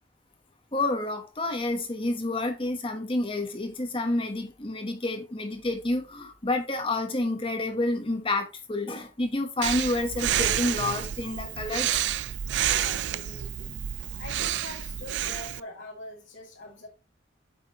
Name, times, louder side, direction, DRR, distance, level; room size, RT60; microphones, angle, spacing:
voice 1, 0.7-12.0, left 2 dB, 30° left, 1.2 m, -29 dB
Breathing, 9.6-15.6, right 11 dB, 65° right, 0.3 m, -29 dB
voice 2, 12.8-13.8 14.2-16.9, left 1 dB, 85° left, 2.5 m, -44 dB
8.2 x 5.2 x 2.9 m
head